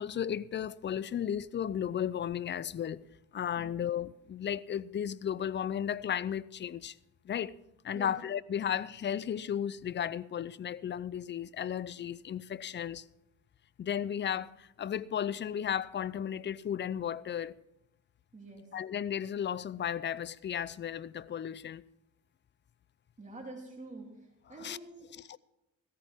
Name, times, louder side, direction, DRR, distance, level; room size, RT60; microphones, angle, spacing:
voice 1, 0.0-3.0 3.3-6.9 7.2-7.5 7.8-13.0 13.8-17.5 18.7-21.8 24.5-24.8 25.1-25.4, left 9 dB, 35° left, 0.5 m, -34 dB
voice 2, 18.3-18.6 23.2-24.1 24.5-25.1, right 2 dB, 25° right, 3.2 m, -46 dB
16.5 x 14.0 x 3.6 m
cardioid pair, 85°, 31 cm